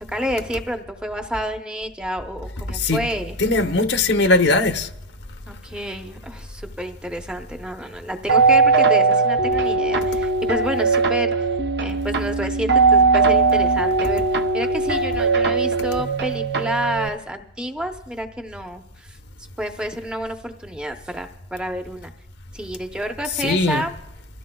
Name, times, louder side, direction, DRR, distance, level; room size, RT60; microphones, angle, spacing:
voice 1, 0.1-3.4 5.5-11.5 11.8-19.2 19.6-22.1 22.5-23.9, equal, 5° right, 0.8 m, -29 dB
voice 2, 3.4-4.9 23.4-23.8, left 2 dB, 80° left, 1.0 m, -19 dB
sound 1, 8.3-17.1, right 4 dB, 65° right, 0.8 m, -19 dB
25.0 x 16.0 x 2.3 m
head